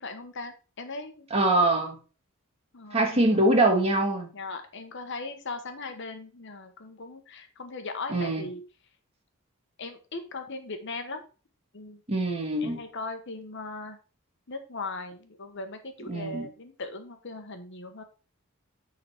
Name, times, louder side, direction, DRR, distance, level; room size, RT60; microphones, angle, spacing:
voice 1, 0.0-1.3 2.7-3.4 4.3-8.6 9.8-11.2 11.7-12.0 12.6-14.0 14.5-18.0, left 3 dB, 60° left, 7 dB, 1.1 m, -39 dB
voice 2, 1.3-2.0 2.9-4.3 8.1-8.5 12.1-12.8 16.1-16.5, right 2 dB, 30° right, 2 dB, 1.9 m, -23 dB
9.6 x 4.0 x 4.4 m, 0.34 s
head